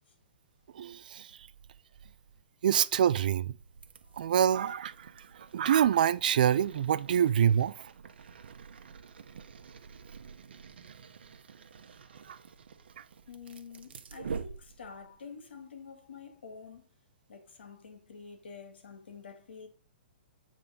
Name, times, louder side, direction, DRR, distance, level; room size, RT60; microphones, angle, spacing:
voice 1, 0.7-1.3 2.6-3.5 4.2-5.1 5.5-7.9 12.3-12.4 13.0-13.1, right 9 dB, 55° right, 0.4 m, -26 dB
sound 1, 3.6-15.2, right 6 dB, 85° right, 0.9 m, -47 dB
voice 2, 13.3-16.9 17.3-19.7, left 5 dB, 90° left, 2.3 m, -48 dB
8.6 x 3.7 x 5.2 m
hypercardioid pair, 175°, 6 cm